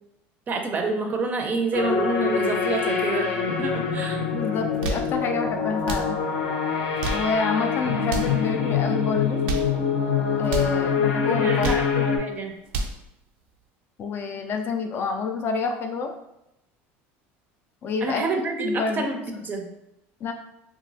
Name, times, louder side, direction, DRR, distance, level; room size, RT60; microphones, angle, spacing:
voice 1, 0.5-3.3 3.6-4.2 11.0-12.6 18.0-19.1 19.5-19.7, right 3 dB, 30° right, 4 dB, 0.5 m, -28 dB
sound 1, 1.7-12.2, left 6 dB, 85° left, 0.6 m, -25 dB
voice 2, 4.3-6.2 7.1-9.4 10.4-11.8 14.0-16.1 17.8-18.2 18.6-19.0 19.3-19.4 20.2-20.3, left 4 dB, 40° left, 4 dB, 0.3 m, -28 dB
sound 2, 4.6-5.1 5.8-6.1 6.8-7.3 8.0-8.4 9.2-9.7 10.4-10.7 11.4-11.9 12.5-13.0, right 3 dB, 85° right, 0.4 m, -30 dB
2.9 x 2.4 x 2.6 m, 0.84 s
supercardioid pair, 125°, 6 cm